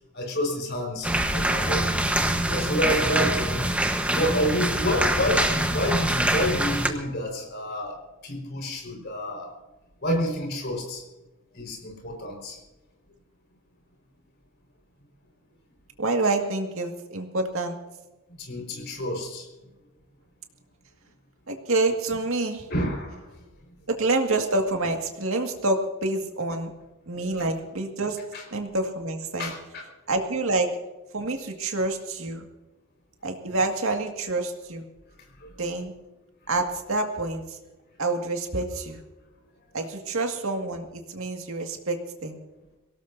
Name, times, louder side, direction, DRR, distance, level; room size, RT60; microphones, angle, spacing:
voice 1, 0.1-1.8 2.5-3.7 4.1-9.5 10.0-11.0 11.5-12.6 18.4-19.5 22.1-22.2 22.7-23.3 26.5-26.6 27.1-27.4 28.3-28.4 29.4-29.8, equal, 55° left, 2 dB, 4.9 m, -29 dB
sound 1, 1.0-6.9, right 1 dB, 5° right, 1.1 m, -24 dB
voice 2, 16.0-17.8 21.5-22.6 23.9-26.7 27.1-28.2 28.5-29.5 30.1-30.7 31.1-32.4 33.2-34.8 35.6-35.9 36.5-37.6 38.0-39.0 39.7-42.4, right 2 dB, 80° right, 3 dB, 2.0 m, -27 dB
23.5 x 17.5 x 2.7 m, 1.1 s
head